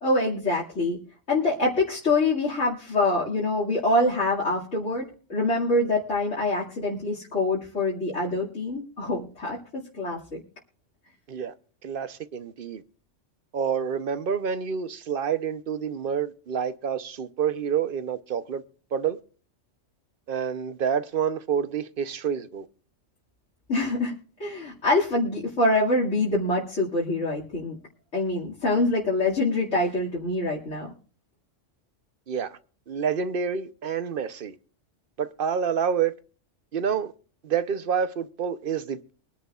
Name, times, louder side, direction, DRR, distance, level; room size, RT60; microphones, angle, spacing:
voice 1, 0.0-1.0 1.3-5.0 5.3-10.4 23.7-27.8 28.1-30.9, left 2 dB, 80° left, 2.7 m, -25 dB
voice 2, 11.8-12.8 13.5-18.6 18.9-19.2 20.3-22.6 32.3-32.6 32.9-34.5 35.2-36.1 36.7-37.1 37.4-39.1, right 7 dB, 50° right, 0.9 m, -28 dB
23.5 x 11.0 x 2.4 m
omnidirectional pair, 1.2 m